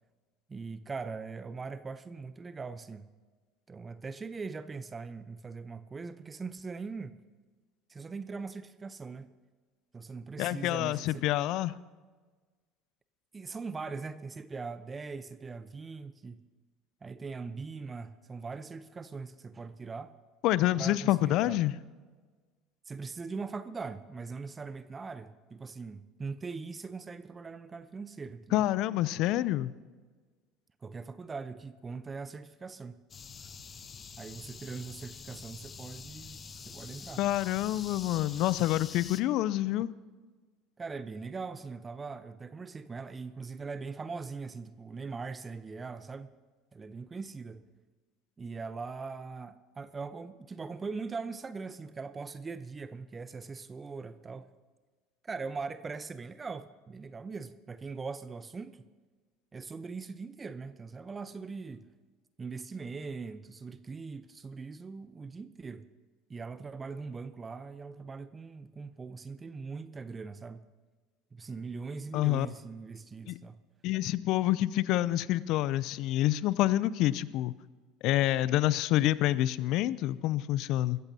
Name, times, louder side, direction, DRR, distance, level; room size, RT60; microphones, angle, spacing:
voice 1, 0.5-3.1 3.7-7.2 7.9-9.3 9.9-11.2 13.3-16.4 17.0-20.1 20.8-21.6 22.9-28.7 30.8-33.0 34.2-37.2 40.8-46.3 46.7-47.6 48.4-54.5 55.2-58.8 59.5-61.9 62.4-65.9 66.3-70.7 71.3-73.6, right 4 dB, 25° right, 13 dB, 0.7 m, -41 dB
voice 2, 10.4-11.7 20.4-21.7 28.5-29.7 37.2-39.9 72.1-72.5 73.3-73.4 73.8-77.5 78.0-81.0, left 14 dB, 60° left, 18 dB, 0.5 m, -27 dB
sound 1, 33.1-39.2, left 5 dB, 35° left, 1.0 m, -46 dB
22.5 x 15.0 x 2.8 m, 1.4 s
hypercardioid pair, 70°, 0 cm